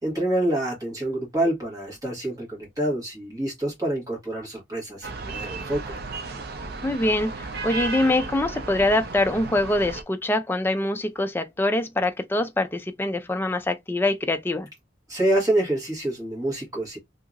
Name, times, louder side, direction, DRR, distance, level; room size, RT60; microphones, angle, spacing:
voice 1, 0.0-6.0 15.1-17.0, right 1 dB, 20° right, 1.4 m, -27 dB
sound 1, 5.0-10.0, right 3 dB, 55° right, 0.5 m, -34 dB
voice 2, 6.8-14.7, left 1 dB, 10° left, 0.3 m, -24 dB
2.8 x 2.7 x 2.4 m
head